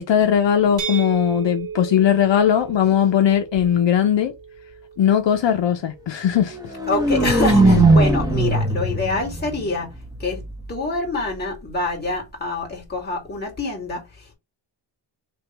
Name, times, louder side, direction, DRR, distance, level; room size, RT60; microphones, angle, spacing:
voice 1, 0.0-4.3 5.0-6.6, left 9 dB, 70° left, 0.7 m, -19 dB
sound 1, 0.8-6.6, right 7 dB, 65° right, 1.2 m, -35 dB
sound 2, 6.5-10.5, right 2 dB, 10° right, 1.2 m, -19 dB
voice 2, 6.9-9.9 10.2-10.4 10.7-14.3, left 3 dB, 20° left, 2.4 m, -26 dB
3.5 x 3.0 x 4.5 m
wide cardioid pair, 135°, 46 cm